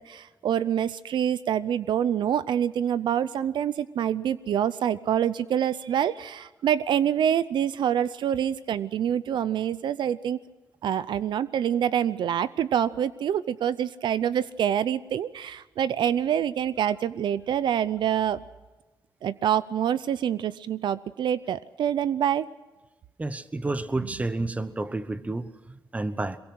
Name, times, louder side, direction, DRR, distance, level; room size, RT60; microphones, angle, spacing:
voice 1, 0.0-10.4 10.8-18.4 19.2-22.5, right 9 dB, 70° right, 16 dB, 0.6 m, -26 dB
voice 2, 23.2-26.4, right 2 dB, 15° right, 13 dB, 1.1 m, -30 dB
22.5 x 22.5 x 6.3 m, 1.2 s
cardioid pair, 110°, 8 cm